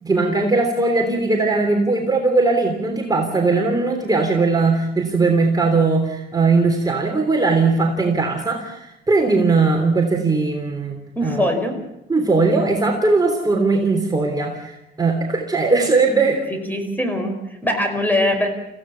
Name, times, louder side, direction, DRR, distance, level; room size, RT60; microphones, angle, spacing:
voice 1, 0.0-11.5 12.1-16.4, right 3 dB, 20° right, 2 dB, 3.3 m, -19 dB
voice 2, 11.1-11.7 16.5-18.5, left 1 dB, 10° left, 6 dB, 5.1 m, -22 dB
26.0 x 16.0 x 7.1 m, 0.86 s
cardioid pair, 90°, 20 cm